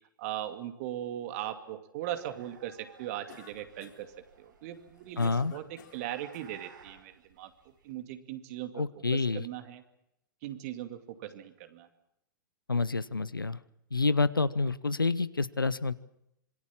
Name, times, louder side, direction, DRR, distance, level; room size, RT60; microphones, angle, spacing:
voice 1, 0.2-4.1 4.4-7.5 7.8-8.8 9.1-9.8 10.4-11.9, right 12 dB, 45° right, 8 dB, 2.5 m, -39 dB
sound 1, 2.0-8.0, right 5 dB, 70° right, 5.4 m, -57 dB
Cough, 3.3-4.2 4.7-6.5, left 8 dB, 60° left, 3.4 m, -52 dB
voice 2, 5.2-5.5 8.7-9.5 12.7-13.6 13.9-15.9, left 3 dB, 85° left, 17 dB, 0.9 m, -28 dB
26.0 x 22.0 x 7.4 m, 0.84 s
figure-of-eight pair, 105°, 11 cm